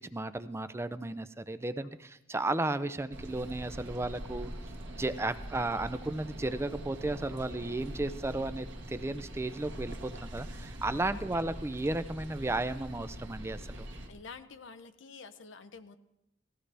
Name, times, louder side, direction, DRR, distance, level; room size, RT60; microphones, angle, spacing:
voice 1, 0.1-4.5 4.9-13.9, right 2 dB, 15° right, 13 dB, 0.4 m, -34 dB
sound 1, 3.1-14.1, equal, 65° right, 1.6 m, -43 dB
voice 2, 14.1-16.0, left 5 dB, 65° left, 9 dB, 0.7 m, -48 dB
17.5 x 14.5 x 3.4 m, 0.90 s
head